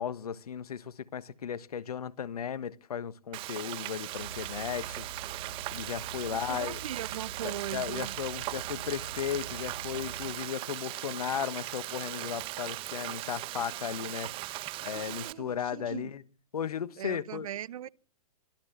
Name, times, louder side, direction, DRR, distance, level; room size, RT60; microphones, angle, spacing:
voice 1, 0.0-5.0 5.7-6.8 7.4-14.3 14.8-16.2 16.5-17.5, left 8 dB, 75° left, 1.4 m, -35 dB
Frying (food), 3.3-15.3, right 18 dB, 25° right, 1.2 m, -39 dB
sound 1, 4.1-10.3, right 5 dB, 80° right, 6.1 m, -46 dB
voice 2, 6.2-8.2 14.8-16.0 17.0-17.9, right 11 dB, 65° right, 0.9 m, -40 dB
24.5 x 13.5 x 8.1 m
hypercardioid pair, 135°, 19 cm